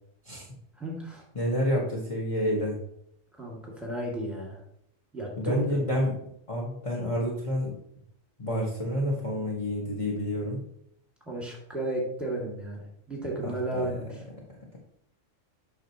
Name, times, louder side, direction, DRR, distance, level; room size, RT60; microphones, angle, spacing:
voice 1, 0.8-1.2 3.4-4.6 5.1-5.8 11.3-14.1, right 1 dB, ahead, -3 dB, 2.2 m, -33 dB
voice 2, 1.3-2.8 5.4-6.1 6.5-7.8 8.4-10.6 13.4-13.9, equal, 25° left, -3 dB, 1.4 m, -29 dB
8.7 x 6.1 x 3.0 m, 0.73 s
omnidirectional pair, 1.4 m